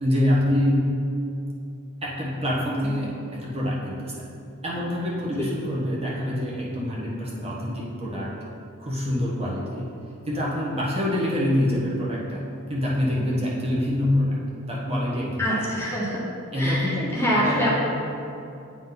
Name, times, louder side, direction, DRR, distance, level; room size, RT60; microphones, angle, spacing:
voice 1, 0.0-0.9 2.0-4.3 4.6-8.3 8.8-9.9 10.3-12.4 12.7-14.4 14.7-15.6 16.5-17.7, left 1 dB, 30° right, -5 dB, 1.3 m, -25 dB
voice 2, 15.4-16.2 16.5-17.7, equal, 10° left, -6 dB, 0.9 m, -25 dB
9.1 x 3.8 x 3.9 m, 2.6 s
head